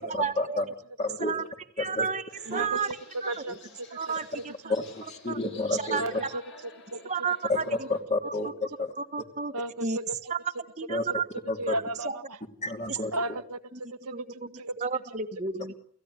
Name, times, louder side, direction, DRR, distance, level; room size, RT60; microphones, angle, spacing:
voice 1, 0.1-0.6 1.2-1.4 1.8-2.2 2.5-2.9 3.2-3.3 3.9-4.5 5.3-5.4 5.7-6.3 7.1-7.6 8.2-8.5 9.0-9.5 9.8-10.0 10.3-10.4 10.8-11.2 12.9-13.0 13.7-13.8 14.1-14.2 14.8-15.7, right 5 dB, 30° right, 5 dB, 1.4 m, -31 dB
voice 2, 1.0-1.4 1.8-2.1 2.5-2.7 4.7-6.2 7.5-7.6 7.9-8.5 8.8-8.9 10.9-11.0 11.5-11.7 12.6-13.1, left 2 dB, 30° left, 5 dB, 2.8 m, -30 dB
sound 1, 2.3-8.0, left 4 dB, 55° left, 6.3 m, -51 dB
voice 3, 2.5-2.8 3.3-3.6 4.1-4.2 4.6-4.7 5.9-6.4 6.9-7.0 7.7-7.8 8.4-8.5 9.5-10.0 11.6-12.2 13.1-13.6 14.0-14.8, right 1 dB, 90° right, 12 dB, 1.6 m, -34 dB
29.5 x 16.5 x 9.6 m, 0.62 s
head